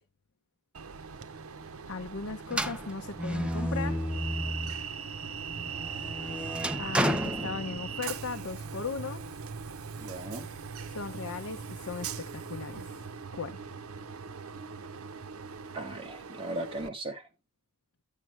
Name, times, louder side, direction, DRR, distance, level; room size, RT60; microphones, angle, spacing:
Train, 0.7-16.9, right 7 dB, 80° right, 0.7 m, -41 dB
voice 1, 1.9-4.0 6.8-9.2 10.9-12.9 13.3-13.6, left 4 dB, 80° left, 0.8 m, -37 dB
sound 1, 2.5-4.9 5.3-8.2, equal, 5° right, 0.6 m, -32 dB
sound 2, 2.8-16.0, right 4 dB, 65° right, 1.6 m, -45 dB
voice 2, 10.0-10.5 15.7-17.3, right 2 dB, 25° right, 1.6 m, -37 dB
10.0 x 7.4 x 3.2 m
head